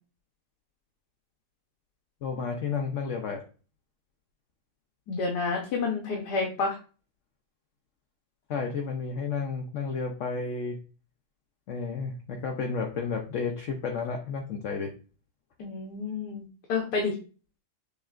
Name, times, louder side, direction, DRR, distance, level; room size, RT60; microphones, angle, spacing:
voice 1, 2.2-3.4 8.5-10.8 11.7-14.9, left 5 dB, 65° left, 4 dB, 0.8 m, -32 dB
voice 2, 5.1-6.8 15.6-16.4 16.7-17.1, left 4 dB, 80° left, 0 dB, 1.6 m, -29 dB
6.7 x 3.1 x 2.4 m, 0.36 s
omnidirectional pair, 1.7 m